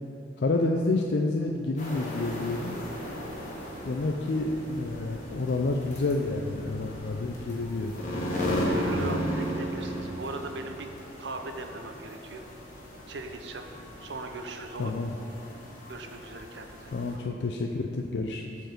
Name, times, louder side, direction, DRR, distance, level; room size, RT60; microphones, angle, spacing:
voice 1, 0.4-2.8 3.9-8.0 14.8-15.1 16.9-18.6, left 2 dB, 65° left, 2 dB, 0.4 m, -29 dB
sound 1, 1.8-17.2, equal, 40° left, 1.7 m, -35 dB
voice 2, 8.5-10.9 11.2-12.4 13.1-13.6 14.0-15.0 15.9-17.2, right 2 dB, 70° right, 5 dB, 0.7 m, -39 dB
7.6 x 4.6 x 6.7 m, 2.6 s
head